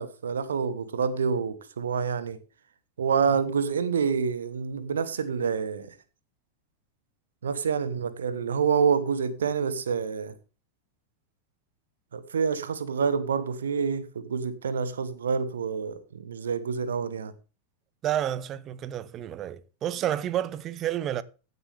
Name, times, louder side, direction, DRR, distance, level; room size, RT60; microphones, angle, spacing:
voice 1, 0.0-2.4 3.0-5.9 7.4-10.3 12.1-17.3, right 6 dB, 65° right, 1.1 m, -27 dB
voice 2, 18.0-21.2, right 11 dB, 30° right, 0.7 m, -30 dB
16.5 x 8.2 x 3.5 m
figure-of-eight pair, 90°, 0 cm